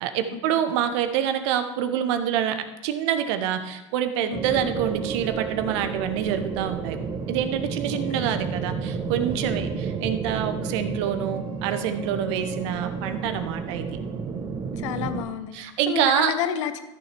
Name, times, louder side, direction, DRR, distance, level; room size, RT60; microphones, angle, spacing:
voice 1, 0.0-7.0 7.3-13.9 15.5-16.3, right 9 dB, 65° right, 9 dB, 1.0 m, -26 dB
voice 2, 4.2-4.7 7.9-8.3 14.8-15.5 15.9-16.8, left 9 dB, 75° left, 11 dB, 0.8 m, -30 dB
sound 1, 4.3-15.2, right 5 dB, 30° right, 1.1 m, -31 dB
14.0 x 6.7 x 3.4 m, 1.0 s
hypercardioid pair, 95°, 16 cm